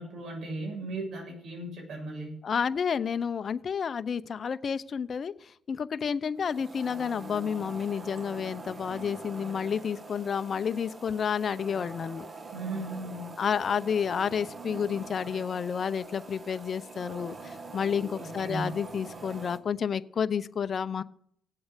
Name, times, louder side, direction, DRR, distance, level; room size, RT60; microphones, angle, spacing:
voice 1, 0.0-2.4 12.5-13.3 18.1-18.8, right 2 dB, 60° right, 1 dB, 7.6 m, -37 dB
voice 2, 2.4-5.3 5.7-12.3 13.4-21.0, left 7 dB, 50° left, 13 dB, 0.7 m, -30 dB
sound 1, 6.4-19.6, right 3 dB, 35° right, 1.9 m, -44 dB
17.5 x 7.8 x 8.2 m, 0.66 s
cardioid pair, 90°, 0 cm